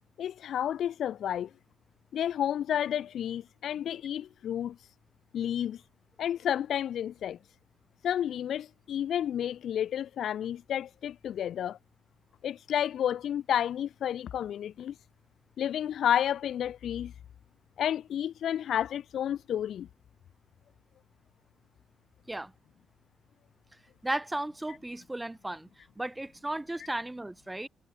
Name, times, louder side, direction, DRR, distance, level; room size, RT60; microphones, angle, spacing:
voice 1, 0.2-1.5 2.1-4.8 5.3-5.8 6.2-7.4 8.0-11.8 12.4-14.9 15.6-17.1 17.8-19.9, left 10 dB, 65° left, 0.5 m, -31 dB
voice 2, 24.0-25.7 26.0-27.7, right 1 dB, 10° right, 2.7 m, -35 dB
cardioid pair, 135°, 0 cm